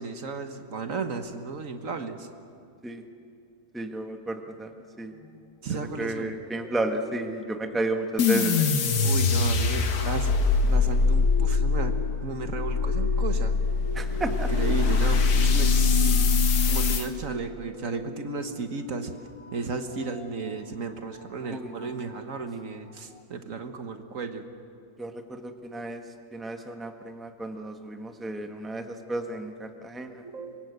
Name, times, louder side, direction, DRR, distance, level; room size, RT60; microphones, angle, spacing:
voice 1, 0.0-2.3 5.6-6.3 9.0-10.3 10.7-13.5 14.5-15.7 16.0-16.3 16.6-19.1 19.5-24.5 30.2-30.6, right 4 dB, 60° right, 7 dB, 1.6 m, -34 dB
voice 2, 3.7-4.7 5.0-5.1 6.0-8.7 14.0-14.5 21.5-21.7 25.0-26.0 26.3-30.2, right 2 dB, ahead, 5 dB, 1.2 m, -32 dB
sound 1, 5.2-5.4 6.5-22.4 22.9-23.0 23.2-23.3, left 4 dB, 35° left, 0.5 m, -38 dB
sound 2, 8.2-17.1, left 4 dB, 75° left, 1.8 m, -23 dB
25.0 x 22.5 x 8.1 m, 2.4 s
omnidirectional pair, 1.6 m